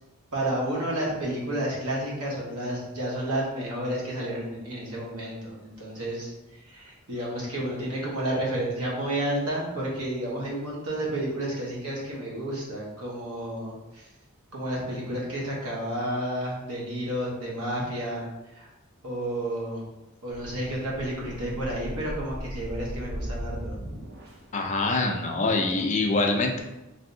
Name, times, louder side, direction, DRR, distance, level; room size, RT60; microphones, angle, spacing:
voice 1, 0.3-14.1 14.5-18.3 18.5-18.7 19.0-19.8 20.2-23.8, right 1 dB, 90° right, -4 dB, 1.0 m, -31 dB
sound 1, 20.4-24.6, equal, 45° right, 0.5 m, -37 dB
voice 2, 24.5-26.6, left 3 dB, 35° left, 3 dB, 0.3 m, -24 dB
3.2 x 2.6 x 2.6 m, 1.0 s
head